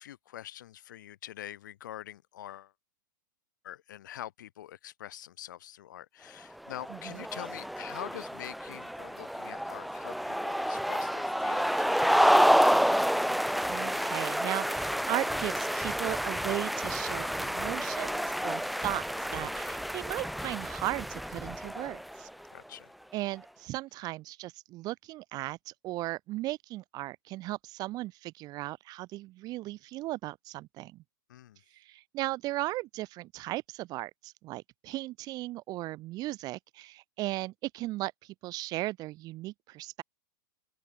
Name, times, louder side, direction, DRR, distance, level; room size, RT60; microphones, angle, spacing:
voice 1, 0.0-2.7 3.6-12.7 22.5-22.9 31.3-31.6, left 12 dB, 70° left, 3.8 m, -45 dB
sound 1, 6.6-22.3, equal, ahead, 0.5 m, -29 dB
voice 2, 6.9-7.2 13.7-19.1 19.3-22.3 23.1-31.0 31.7-40.0, right 18 dB, 40° right, 3.4 m, -37 dB
open air
hypercardioid pair, 120°, 11 cm